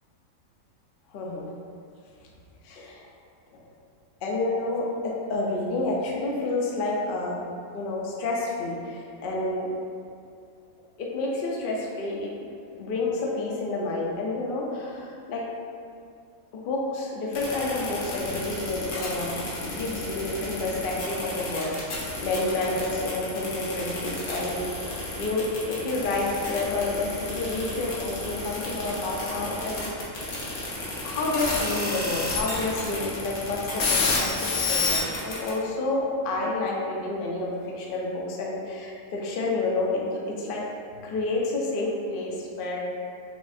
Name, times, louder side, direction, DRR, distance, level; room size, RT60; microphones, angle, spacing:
voice 1, 1.1-1.5 2.6-3.1 3.5-3.6 4.2-7.4 7.7-9.7 11.0-12.3 12.8-15.4 16.5-30.2 31.0-40.6 41.0-42.8, left 2 dB, 60° left, -3 dB, 0.5 m, -29 dB
sound 1, 17.3-35.5, left 3 dB, 85° left, 1.4 m, -30 dB
6.1 x 2.4 x 2.6 m, 2.4 s
omnidirectional pair, 1.6 m